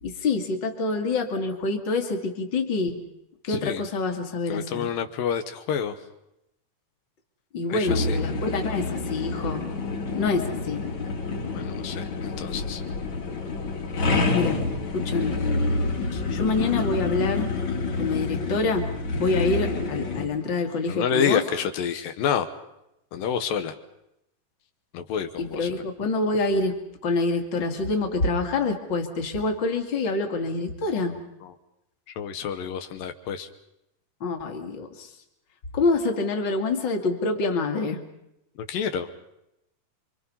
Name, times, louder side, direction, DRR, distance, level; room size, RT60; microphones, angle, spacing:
voice 1, 0.0-3.0 3.4-4.9 7.5-9.7 10.1-10.8 14.3-14.6 14.9-15.4 16.3-17.5 18.0-21.4 25.4-26.8 27.0-31.2 34.2-35.1 35.7-38.0, left 3 dB, 35° left, 4 dB, 2.3 m, -26 dB
voice 2, 3.5-3.8 4.5-6.0 7.7-8.2 11.5-12.8 16.1-16.2 20.9-22.5 23.1-23.8 24.9-25.8 31.4-31.5 32.2-33.5 38.7-39.1, left 7 dB, 80° left, 7 dB, 2.8 m, -28 dB
sound 1, 7.9-20.3, left 3 dB, 55° left, 4.6 m, -28 dB
27.0 x 24.5 x 5.6 m, 0.83 s
omnidirectional pair, 4.0 m